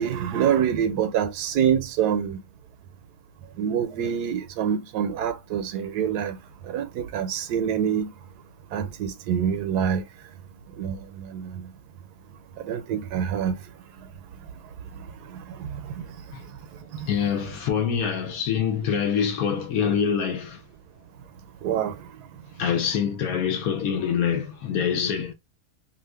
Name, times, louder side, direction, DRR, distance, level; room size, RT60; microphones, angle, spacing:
voice 1, 0.0-2.4 3.6-6.4 6.7-8.1 8.7-10.0 10.8-11.6 12.7-13.5 15.6-16.0 17.0-17.1 21.6-22.0, right 8 dB, 80° right, 1.1 m, -26 dB
voice 2, 17.0-20.6 22.6-25.3, left 7 dB, 70° left, 1.0 m, -25 dB
2.8 x 2.5 x 3.2 m
omnidirectional pair, 1.8 m